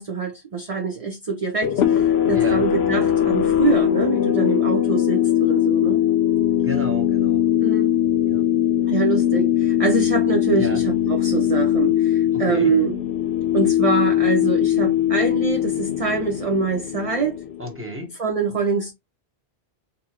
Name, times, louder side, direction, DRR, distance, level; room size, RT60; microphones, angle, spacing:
voice 1, 0.0-6.0 7.6-7.9 8.8-13.0 13.5-17.4 18.2-18.9, right 5 dB, 35° right, 0.8 m, -24 dB
sound 1, 1.6-17.9, left 11 dB, 75° left, 0.9 m, -20 dB
voice 2, 2.3-2.6 6.6-7.5 8.2-8.4 10.6-10.8 12.3-12.7 17.6-18.2, equal, 10° right, 1.1 m, -32 dB
3.9 x 3.5 x 2.9 m
omnidirectional pair, 1.1 m